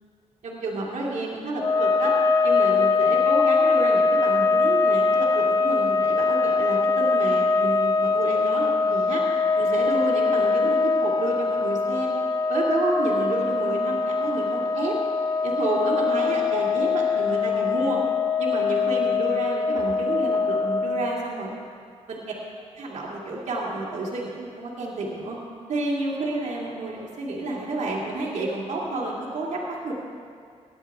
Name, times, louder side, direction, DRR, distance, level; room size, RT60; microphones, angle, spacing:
voice 1, 0.4-2.1 2.4-9.2 9.5-12.1 12.5-15.0 15.4-18.0 18.4-21.5 22.1-22.2 22.8-25.4 25.7-29.9, right 2 dB, 75° right, -4 dB, 2.2 m, -30 dB
sound 1, 1.6-21.2, left 4 dB, 30° left, 0.5 m, -22 dB
17.0 x 9.9 x 3.6 m, 2.2 s
wide cardioid pair, 110°, 12 cm